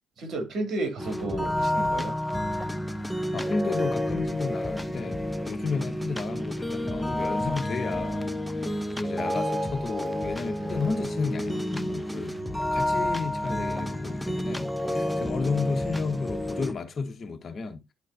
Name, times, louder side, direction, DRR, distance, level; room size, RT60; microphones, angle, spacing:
voice 1, 0.2-2.2 12.4-12.6, right 2 dB, 65° right, 2.9 m, -32 dB
sound 1, 1.0-16.7, left 1 dB, 5° left, 0.8 m, -30 dB
voice 2, 3.3-8.3 9.0-12.4 12.7-17.8, left 4 dB, 45° left, 1.6 m, -32 dB
11.5 x 4.4 x 2.7 m
cardioid pair, 90°, 0 cm